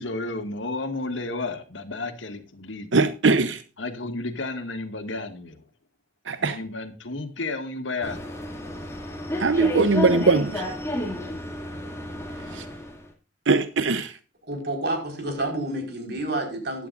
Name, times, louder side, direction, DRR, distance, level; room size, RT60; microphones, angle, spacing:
voice 1, 0.0-3.1 3.8-5.7 6.4-8.4, left 2 dB, 90° left, 2.0 m, -32 dB
voice 2, 2.9-3.6 6.3-6.6 9.4-10.7 12.5-12.6 13.5-14.1, right 3 dB, 75° right, 0.8 m, -21 dB
sound 1, 8.0-13.1, left 1 dB, 15° left, 2.5 m, -32 dB
voice 3, 14.4-16.9, right 1 dB, 60° right, 4.9 m, -29 dB
16.0 x 11.0 x 2.6 m
head